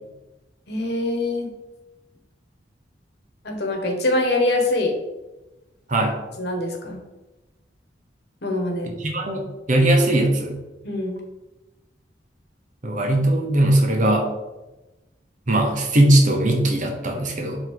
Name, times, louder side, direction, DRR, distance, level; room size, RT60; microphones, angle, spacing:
voice 1, 0.7-1.5 3.4-4.9 6.4-7.0 8.4-8.9 10.8-11.2, left 2 dB, 60° left, 2 dB, 1.2 m, -23 dB
voice 2, 9.0-10.5 12.8-14.2 15.5-17.6, right 1 dB, 45° right, 2 dB, 0.9 m, -19 dB
5.5 x 3.7 x 4.7 m, 1.1 s
head